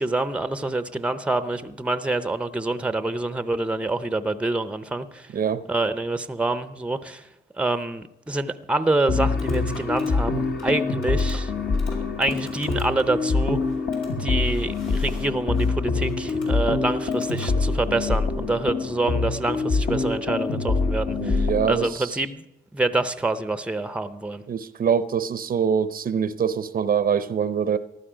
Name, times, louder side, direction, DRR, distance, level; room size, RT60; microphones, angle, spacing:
voice 1, 0.0-5.3 5.7-7.3 7.6-11.5 12.2-13.6 14.2-22.4 22.7-24.4, right 2 dB, 5° right, 0.7 m, -26 dB
sound 1, 8.7-18.1, left 2 dB, 90° left, 4.1 m, -49 dB
sound 2, 9.1-21.9, left 4 dB, 55° left, 1.5 m, -25 dB
voice 2, 21.2-22.2 24.5-27.8, right 7 dB, 45° right, 0.7 m, -24 dB
15.0 x 12.0 x 5.1 m
cardioid pair, 90°, 20 cm